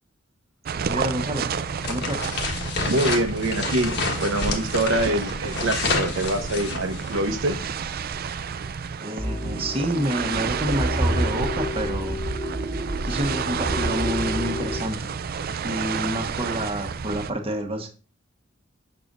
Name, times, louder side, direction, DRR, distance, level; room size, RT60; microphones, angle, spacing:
sound 1, 0.7-17.3, right 6 dB, 50° right, 0.4 m, -30 dB
voice 1, 0.9-1.5 1.9-2.3 9.0-12.2 13.0-15.0 15.6-17.9, equal, 30° right, 2 dB, 1.2 m, -28 dB
sound 2, 1.8-7.3, left 3 dB, 60° left, 1.4 m, -29 dB
voice 2, 2.9-7.6, right 1 dB, 80° right, 5 dB, 0.9 m, -25 dB
sound 3, 9.2-14.8, equal, 10° right, 1.5 m, -29 dB
6.9 x 6.6 x 2.5 m, 0.34 s
head